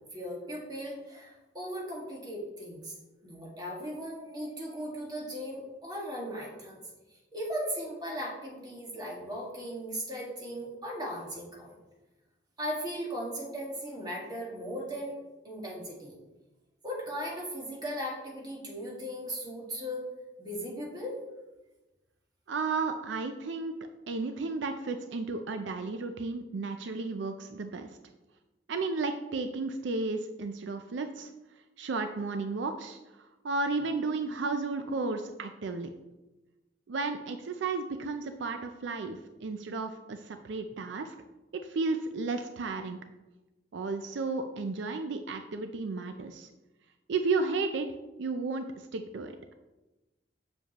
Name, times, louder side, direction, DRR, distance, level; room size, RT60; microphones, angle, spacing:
voice 1, 0.1-2.9 3.2-6.8 7.3-11.7 12.6-15.1 15.4-16.1 16.8-20.1 20.4-21.2, equal, 20° right, -3 dB, 1.8 m, -37 dB
voice 2, 22.5-23.8 24.1-27.9 28.7-31.3 31.8-33.0 33.4-35.9 36.9-41.1 41.6-43.0 43.7-46.5 47.1-47.9 48.2-48.7 48.9-49.3, right 3 dB, 70° right, 7 dB, 0.4 m, -33 dB
7.2 x 7.0 x 3.0 m, 1.1 s
head